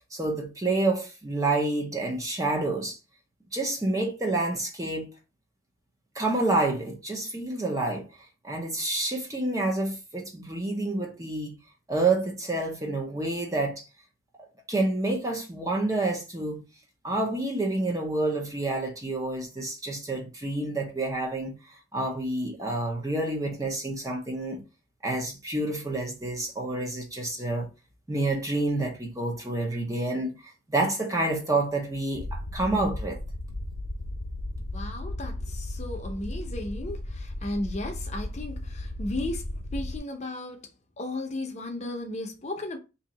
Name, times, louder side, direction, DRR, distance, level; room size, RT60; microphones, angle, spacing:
voice 1, 0.1-3.0 3.5-5.1 6.1-8.1 8.4-11.6 11.9-13.8 14.7-16.6 17.0-21.5 21.9-24.6 25.0-27.7 28.1-30.3 30.7-33.2, right 2 dB, 15° right, 0.6 m, -28 dB
sound 1, 32.1-40.0, left 1 dB, 80° left, 0.7 m, -35 dB
voice 2, 34.7-39.4 39.7-40.7 41.0-42.8, left 1 dB, 35° left, 0.6 m, -35 dB
2.9 x 2.7 x 4.0 m
head